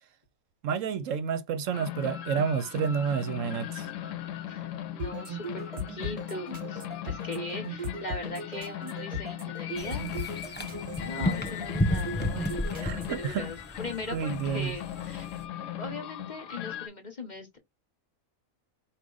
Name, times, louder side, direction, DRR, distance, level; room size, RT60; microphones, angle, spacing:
voice 1, 0.6-3.9 12.8-13.4 14.1-14.8, right 7 dB, 70° right, 1.0 m, -30 dB
sound 1, 1.7-16.9, left 11 dB, 70° left, 0.9 m, -38 dB
voice 2, 4.5-10.1 11.0-15.3 15.8-17.6, left 2 dB, 35° left, 0.9 m, -40 dB
sound 2, 5.0-13.3, equal, 30° right, 1.2 m, -37 dB
sound 3, 9.8-15.4, equal, 10° left, 0.5 m, -33 dB
4.7 x 2.5 x 3.8 m
omnidirectional pair, 1.4 m